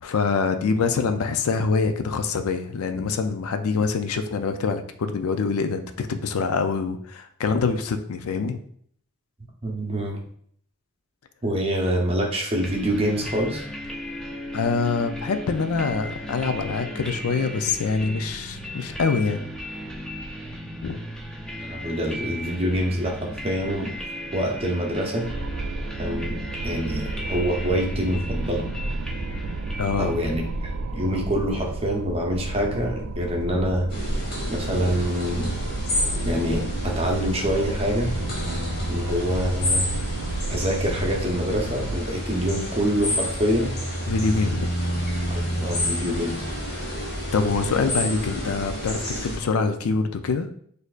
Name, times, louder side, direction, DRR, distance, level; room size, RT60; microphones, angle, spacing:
voice 1, 0.0-8.6 14.5-19.4 20.8-21.0 29.8-30.2 44.1-44.7 47.3-50.5, left 4 dB, 75° left, 8 dB, 0.4 m, -25 dB
voice 2, 9.6-10.2 11.4-13.6 21.6-24.0 24.3-25.3 26.0-28.6 30.0-30.4 30.9-33.9 34.5-35.5 36.2-38.1 38.9-39.9 40.5-43.8 45.3-46.4, equal, 25° right, 0 dB, 0.7 m, -25 dB
sound 1, 12.6-31.3, equal, 5° left, 0.5 m, -36 dB
sound 2, 25.2-42.0, right 2 dB, 60° right, 0.3 m, -32 dB
sound 3, 33.9-49.4, equal, 45° left, 1.5 m, -29 dB
6.3 x 2.6 x 2.4 m, 0.62 s
head